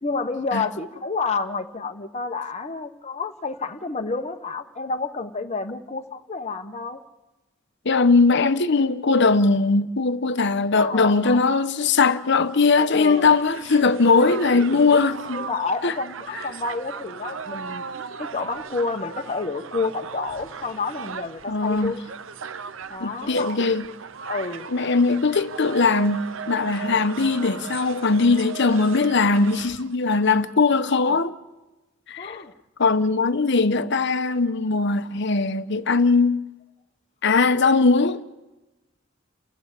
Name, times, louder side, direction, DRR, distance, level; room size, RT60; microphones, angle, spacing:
voice 1, 0.0-7.0 10.8-11.4 12.9-13.3 14.2-15.0 15.3-17.8 18.2-22.0 22.9-23.5 24.3-24.7 32.2-32.5, left 4 dB, 35° left, 1.1 m, -29 dB
voice 2, 7.8-15.4 15.8-15.9 21.5-21.9 23.0-23.9 24.7-31.3 32.1-32.4 32.8-36.4 37.2-38.2, left 4 dB, 60° left, 1.0 m, -20 dB
Crowd, 12.6-29.9, right 6 dB, 70° right, 0.8 m, -37 dB
29.5 x 15.0 x 8.4 m
head